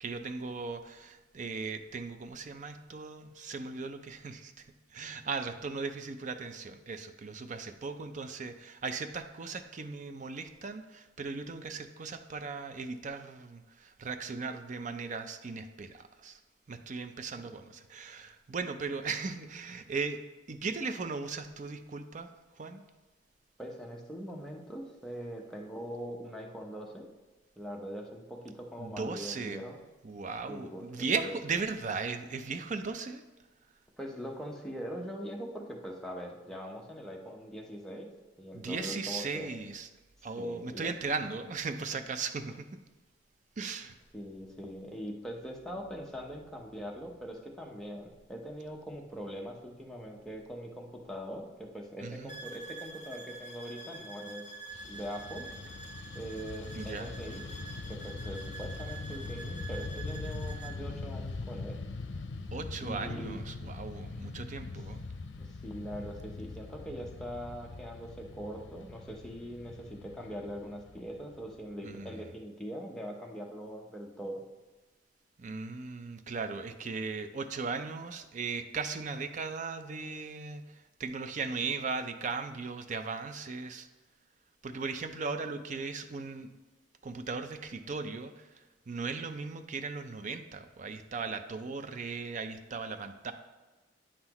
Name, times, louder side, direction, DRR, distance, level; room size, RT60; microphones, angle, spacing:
voice 1, 0.0-4.7 4.9-16.4 16.7-22.8 28.8-29.6 30.0-33.2 38.5-39.9 40.2-42.8 43.6-43.9 52.0-52.4 56.7-57.1 62.5-65.0 71.8-72.3 75.4-83.9 84.6-86.5 87.0-93.3, right 4 dB, 45° right, 9 dB, 0.5 m, -37 dB
voice 2, 23.6-27.1 27.6-29.8 30.5-30.8 31.2-31.3 34.0-38.1 38.4-39.5 40.4-40.9 44.1-54.5 54.8-55.5 56.1-57.4 57.9-61.8 62.8-63.4 65.4-74.4, equal, 5° left, -1 dB, 0.8 m, -42 dB
sound 1, 52.3-60.8, right 3 dB, 40° left, 0.8 m, -47 dB
Fixed-wing aircraft airplane, 54.7-72.1, left 3 dB, 85° left, 0.5 m, -42 dB
8.6 x 5.7 x 3.0 m, 1.2 s
head